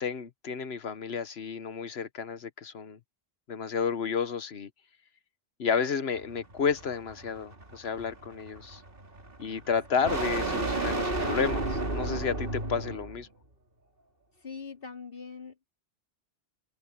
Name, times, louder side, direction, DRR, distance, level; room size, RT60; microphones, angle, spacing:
voice 1, 0.0-3.0 3.5-4.7 5.6-8.8 9.4-13.3, left 6 dB, 75° left, 1.3 m, -31 dB
sound 1, 6.2-13.2, right 2 dB, 60° right, 3.1 m, -33 dB
voice 2, 14.4-15.7, left 5 dB, 60° left, 3.4 m, -42 dB
open air
omnidirectional pair, 1.1 m